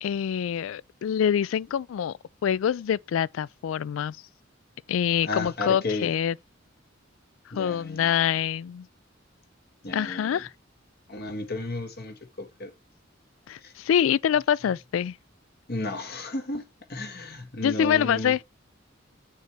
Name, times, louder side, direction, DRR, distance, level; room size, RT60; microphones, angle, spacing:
voice 1, 0.0-4.2 4.9-6.3 7.6-8.9 9.9-10.5 13.5-15.2 17.6-18.4, left 9 dB, 90° left, 0.3 m, -25 dB
voice 2, 5.2-6.1 7.5-8.1 9.8-10.4 11.1-12.7 13.6-13.7 15.7-16.6 16.9-18.3, left 2 dB, 55° left, 1.5 m, -33 dB
6.5 x 3.3 x 5.9 m
head